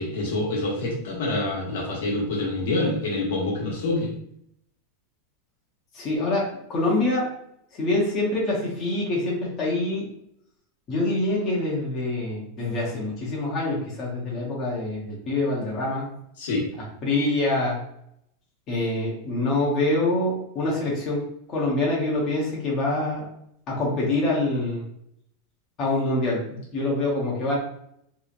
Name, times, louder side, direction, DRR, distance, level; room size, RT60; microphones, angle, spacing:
voice 1, 0.0-4.1 16.4-16.7, left 2 dB, 80° left, -3 dB, 1.0 m, -26 dB
voice 2, 5.9-7.3 7.7-10.1 10.9-16.1 17.0-17.8 18.7-23.3 23.7-24.8 25.8-27.5, left 2 dB, 25° left, -5 dB, 0.8 m, -25 dB
2.8 x 2.1 x 2.5 m, 0.71 s
supercardioid pair, 165°, 0 cm